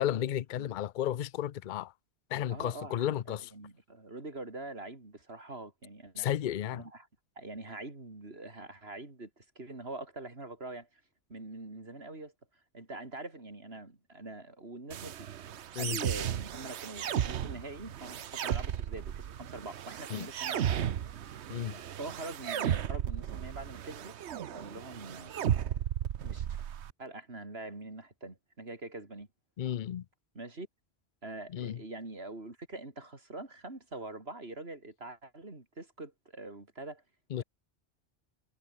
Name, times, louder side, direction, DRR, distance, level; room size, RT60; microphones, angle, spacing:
voice 1, 0.0-1.9 2.3-3.5 6.2-6.8 15.7-16.0 20.1-20.3 21.5-21.8 29.6-30.0 31.5-31.8 37.3-37.4, left 11 dB, 55° left, 0.7 m, -33 dB
voice 2, 2.5-6.3 6.7-7.1 7.4-10.9 11.3-12.3 12.7-15.3 15.8-20.9 22.0-24.2 24.5-25.3 26.2-26.5 27.0-29.3 30.3-30.7 31.2-37.0 37.4-37.5, right 2 dB, 65° right, 4.3 m, -44 dB
sound 1, 14.9-26.9, right 9 dB, 85° right, 1.1 m, -35 dB
omnidirectional pair, 1.1 m